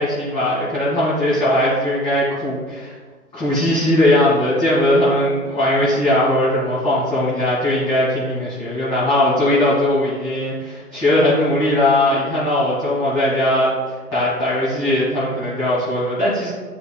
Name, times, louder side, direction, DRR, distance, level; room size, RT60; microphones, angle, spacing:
voice 1, 0.0-2.9 3.3-16.5, left 1 dB, 10° left, -11 dB, 1.9 m, -19 dB
11.0 x 5.1 x 2.2 m, 1.5 s
figure-of-eight pair, 140°, 46 cm